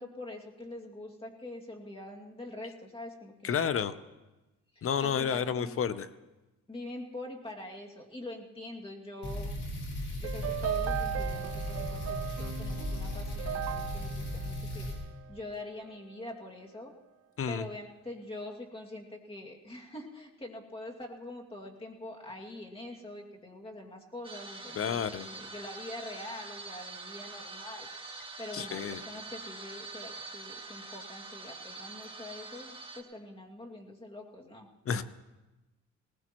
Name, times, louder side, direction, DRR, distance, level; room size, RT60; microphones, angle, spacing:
voice 1, 0.0-3.5 4.7-5.7 6.7-9.5 10.2-14.9 15.3-16.9 17.5-27.9 28.4-35.0, left 1 dB, 20° left, 0 dB, 2.3 m, -44 dB
voice 2, 3.4-3.9 4.8-6.1 17.4-17.6 24.8-25.3 28.5-29.0 34.9-35.0, left 7 dB, 45° left, 14 dB, 0.7 m, -30 dB
sound 1, 9.2-15.0, left 1 dB, 70° left, 5.6 m, -36 dB
sound 2, 10.2-15.6, right 10 dB, 55° right, 0.5 m, -37 dB
sound 3, 24.2-33.0, right 3 dB, 15° right, 1.7 m, -45 dB
20.0 x 19.5 x 3.0 m, 1.1 s
cardioid pair, 90°, 30 cm